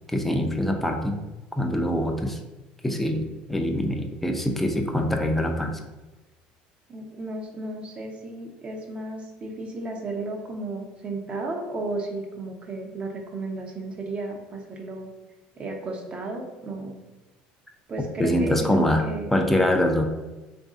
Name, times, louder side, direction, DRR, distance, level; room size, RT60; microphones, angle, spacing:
voice 1, 0.1-1.2 1.6-2.4 2.8-5.8 18.2-19.1 19.3-20.0, left 1 dB, 5° left, 3 dB, 0.5 m, -24 dB
voice 2, 6.9-15.1 15.6-17.0 17.9-19.3, right 2 dB, 30° right, 2 dB, 0.8 m, -34 dB
3.1 x 2.6 x 3.6 m, 1.1 s
supercardioid pair, 95°, 4 cm